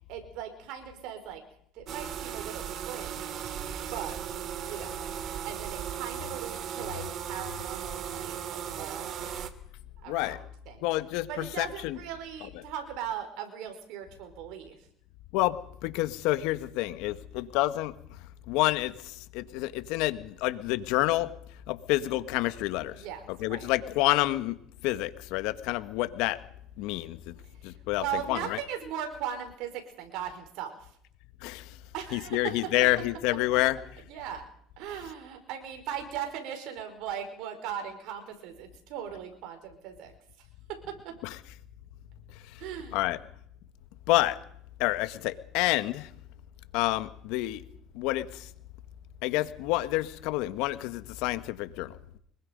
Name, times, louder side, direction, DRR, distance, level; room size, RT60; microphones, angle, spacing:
voice 1, 0.1-1.4 1.7-3.5 3.9-4.2 4.6-5.1 5.4-9.3 10.0-10.8 11.3-14.8 22.9-23.7 27.9-30.9 31.9-32.7 34.1-34.5 34.8-40.1 40.7-41.2 42.6-43.0, right 9 dB, 70° right, 6 dB, 5.0 m, -38 dB
sound 1, 1.9-9.5, right 9 dB, 55° right, 2.2 m, -37 dB
voice 2, 10.1-10.4 10.8-12.0 15.3-17.9 18.5-21.3 21.7-23.0 23.4-24.6 24.8-26.4 26.8-27.3 27.6-28.6 31.4-31.7 32.1-33.8 41.2-41.3 42.9-43.2 44.1-44.4 44.8-46.1 46.7-47.6 47.9-48.5 49.2-52.2, left 17 dB, 75° left, 12 dB, 1.5 m, -28 dB
25.0 x 21.5 x 5.3 m, 0.66 s
supercardioid pair, 100°, 0 cm